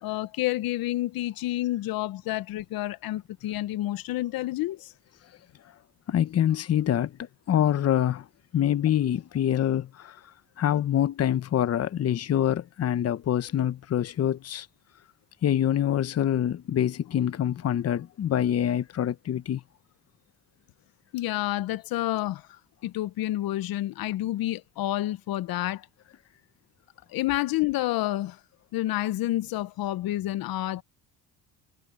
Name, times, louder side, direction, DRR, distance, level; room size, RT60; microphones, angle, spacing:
voice 1, 0.0-4.9 21.1-25.9 27.1-28.4 28.7-30.8, left 15 dB, 70° left, 0.9 m, -29 dB
voice 2, 6.1-8.3 8.5-10.2 10.6-14.7 15.4-19.6, left 10 dB, 40° left, 0.9 m, -25 dB
cardioid pair, 105°, 37 cm